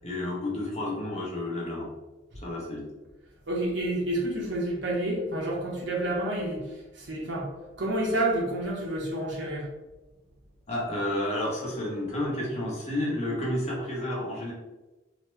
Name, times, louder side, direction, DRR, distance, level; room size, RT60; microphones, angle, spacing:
voice 1, 0.0-1.9 2.4-2.9 10.7-14.5, left 1 dB, 35° left, -3 dB, 0.8 m, -31 dB
voice 2, 3.5-9.7, right 1 dB, 65° right, -3 dB, 1.0 m, -29 dB
3.1 x 2.1 x 3.1 m, 1.1 s
head